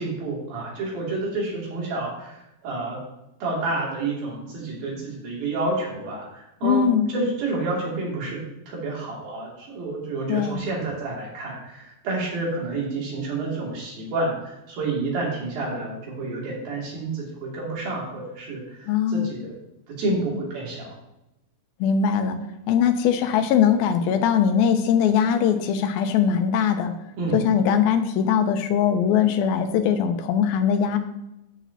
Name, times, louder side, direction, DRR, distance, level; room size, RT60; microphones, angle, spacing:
voice 1, 0.0-3.0 3.4-8.4 8.7-19.6 19.9-20.9 27.2-27.4, right 2 dB, 75° right, -4 dB, 4.4 m, -29 dB
voice 2, 6.6-7.1 10.3-10.7 18.9-19.3 21.8-22.4 22.7-26.9 27.3-31.0, left 8 dB, 90° left, 7 dB, 2.5 m, -21 dB
13.0 x 6.1 x 2.8 m, 0.89 s
omnidirectional pair, 4.2 m